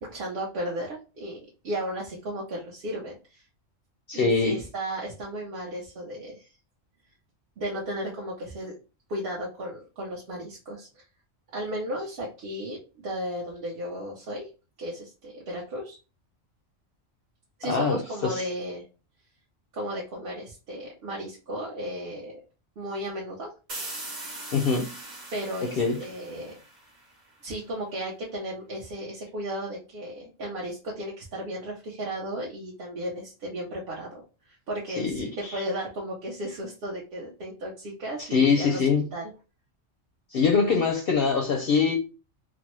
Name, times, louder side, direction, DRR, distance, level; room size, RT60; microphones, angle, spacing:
voice 1, 0.0-3.4 4.1-6.5 7.6-8.8 9.1-11.0 11.5-14.5 14.8-16.0 17.6-18.8 19.7-22.4 22.8-23.5 25.3-26.5 27.4-38.8 39.1-39.3, equal, 55° right, 0.8 m, -35 dB
voice 2, 4.1-4.6 17.7-18.4 24.5-24.9 25.8-26.0 35.0-35.6 38.3-39.1 40.3-42.0, left 5 dB, 60° left, 0.6 m, -23 dB
sound 1, 23.7-27.3, right 2 dB, 40° right, 1.1 m, -40 dB
3.3 x 2.0 x 2.9 m
omnidirectional pair, 1.3 m